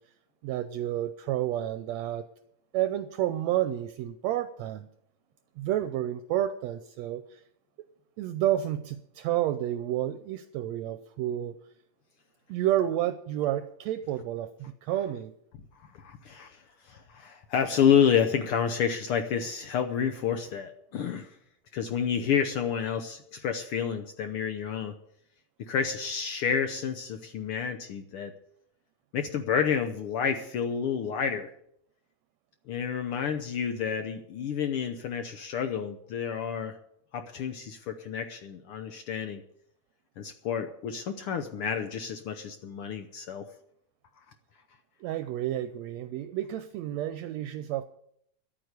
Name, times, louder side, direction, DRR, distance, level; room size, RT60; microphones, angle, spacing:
voice 1, 0.4-2.3 2.7-4.9 5.6-7.4 8.2-11.6 12.5-15.3 45.0-47.8, right 12 dB, 75° right, 10 dB, 1.8 m, -30 dB
voice 2, 15.8-21.3 21.7-24.9 25.6-28.3 29.1-31.5 32.7-36.8 37.1-39.4 40.2-43.5, left 7 dB, 70° left, 8 dB, 1.3 m, -29 dB
11.5 x 8.9 x 8.0 m, 0.71 s
omnidirectional pair, 3.3 m